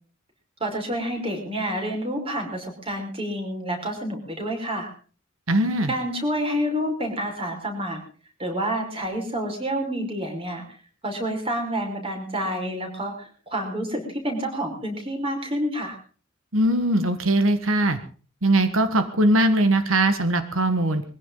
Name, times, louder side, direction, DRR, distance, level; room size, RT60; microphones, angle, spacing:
voice 1, 0.6-4.9 5.9-8.0 8.4-10.6 11.0-16.0, equal, 25° right, 3 dB, 5.2 m, -28 dB
voice 2, 5.5-5.9 16.5-18.0 18.4-21.0, right 1 dB, 85° right, 9 dB, 1.6 m, -20 dB
22.5 x 15.5 x 3.9 m, 0.41 s
head